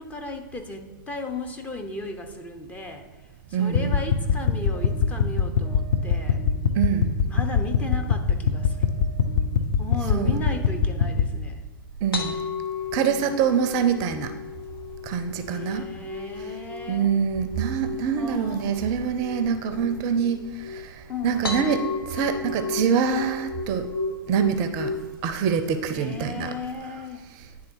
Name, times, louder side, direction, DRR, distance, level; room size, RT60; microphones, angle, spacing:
voice 1, 0.0-3.1 3.5-6.4 7.3-8.8 9.8-11.6 13.0-13.3 15.5-17.1 18.2-18.8 21.1-21.7 25.9-27.2, left 3 dB, 10° left, 4 dB, 0.6 m, -35 dB
voice 2, 3.5-4.0 6.8-7.1 10.1-10.3 12.0-12.4 12.9-14.3 15.0-15.9 16.9-23.9 24.3-24.9 25.2-26.5, right 7 dB, 35° right, 9 dB, 0.5 m, -25 dB
sound 1, 3.7-11.3, left 6 dB, 50° left, 0.8 m, -24 dB
sound 2, 12.1-25.2, left 4 dB, 75° left, 1.1 m, -34 dB
9.7 x 3.6 x 4.5 m, 1.2 s
figure-of-eight pair, 115°, 12 cm